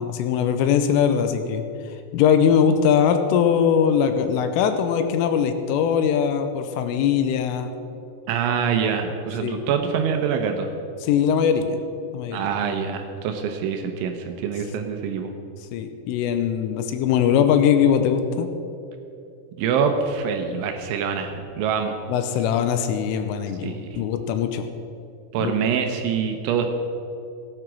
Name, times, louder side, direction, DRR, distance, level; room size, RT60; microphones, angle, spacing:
voice 1, 0.0-1.6 2.1-7.7 9.4-9.6 11.0-11.8 12.1-12.4 15.7-18.5 22.1-24.7 25.4-25.8, left 8 dB, 80° left, 8 dB, 3.2 m, -21 dB
voice 2, 8.3-10.7 12.3-15.3 19.6-22.0 23.6-24.0 25.3-26.7, right 7 dB, 75° right, 5 dB, 3.0 m, -25 dB
17.5 x 9.0 x 6.1 m, 2.7 s
omnidirectional pair, 6.0 m